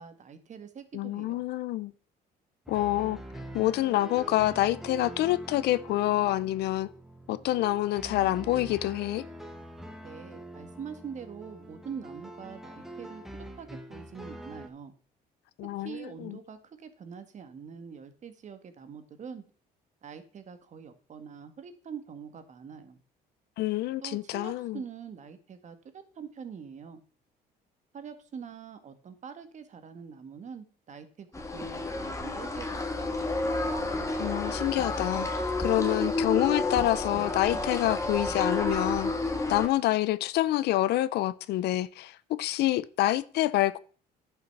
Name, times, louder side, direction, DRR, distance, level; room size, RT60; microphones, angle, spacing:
voice 1, 0.0-1.4 10.0-13.2 13.6-14.9 15.8-19.4 20.0-23.0 24.0-27.0 27.9-31.3 31.5-33.3, right 6 dB, 45° right, 1.8 m, -44 dB
voice 2, 0.9-1.9 2.7-3.2 3.5-6.9 7.3-9.3 15.6-16.4 23.6-24.8 34.2-35.3 35.6-39.1 39.5-43.8, left 15 dB, 75° left, 0.7 m, -27 dB
sound 1, 2.7-14.7, right 1 dB, ahead, 1.6 m, -44 dB
sound 2, 31.3-39.7, left 2 dB, 15° left, 1.9 m, -30 dB
11.0 x 6.1 x 6.0 m
cardioid pair, 110°, 17 cm